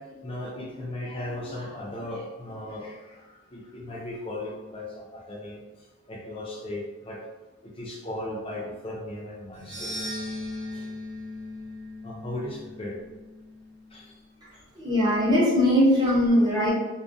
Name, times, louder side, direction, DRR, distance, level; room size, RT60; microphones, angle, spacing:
voice 1, 0.0-7.3 7.6-10.0 10.7-10.9 12.0-13.0 13.9-14.2 14.5-14.7, left 1 dB, 25° left, -2 dB, 0.4 m, -37 dB
sound 1, 9.5-13.9, left 1 dB, 55° right, 0.8 m, -38 dB
voice 2, 14.8-16.7, equal, 20° right, -7 dB, 0.7 m, -20 dB
2.3 x 2.1 x 2.5 m, 1.2 s
head